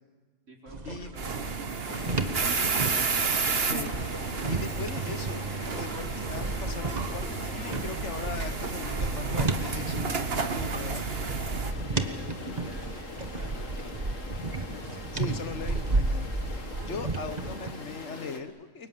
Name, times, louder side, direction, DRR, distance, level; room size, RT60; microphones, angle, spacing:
voice 1, 0.5-3.1 11.9-15.0, right 1 dB, 70° right, -1 dB, 5.3 m, -49 dB
sound 1, 0.7-17.7, right 2 dB, 35° right, 1.5 m, -33 dB
sound 2, 1.2-11.7, right 5 dB, 50° right, 1.6 m, -31 dB
sound 3, 1.9-18.4, left 2 dB, 85° left, 2.7 m, -42 dB
voice 2, 4.4-5.5 5.7-11.0 15.1-16.3 16.8-18.9, left 4 dB, 65° left, 10 dB, 1.6 m, -39 dB
29.0 x 24.0 x 7.5 m, 1.4 s
omnidirectional pair, 1.3 m